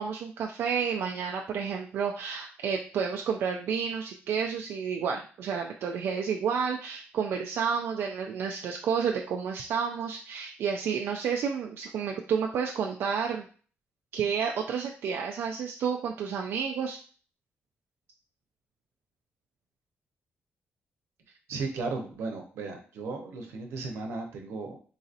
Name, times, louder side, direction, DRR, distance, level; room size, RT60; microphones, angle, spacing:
voice 1, 0.0-13.5 14.1-17.0, right 6 dB, 65° right, 1 dB, 0.3 m, -30 dB
voice 2, 21.5-24.8, right 3 dB, 85° right, 3 dB, 0.8 m, -35 dB
3.9 x 2.7 x 2.5 m, 0.41 s
wide cardioid pair, 180°, 4 cm